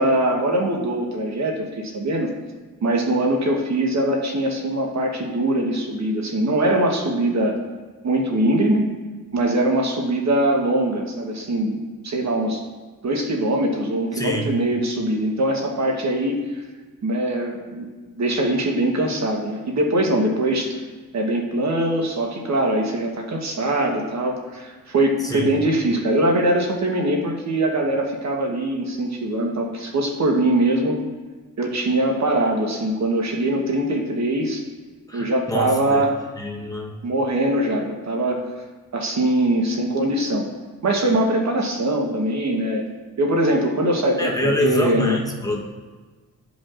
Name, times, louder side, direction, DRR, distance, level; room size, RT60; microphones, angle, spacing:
voice 1, 0.0-2.3 2.8-7.5 8.0-8.8 9.3-12.6 13.0-16.4 17.0-17.9 18.1-20.8 21.1-31.0 31.6-34.6 35.1-36.1 37.0-38.4 38.9-40.5 40.8-42.8 43.2-45.1, right 1 dB, 50° right, 0 dB, 1.1 m, -22 dB
voice 2, 14.1-14.6 25.2-25.5 35.1-36.0 36.4-37.0 44.2-45.6, left 1 dB, 10° left, -1 dB, 1.0 m, -25 dB
13.0 x 5.2 x 2.5 m, 1.4 s
cardioid pair, 110°, 35 cm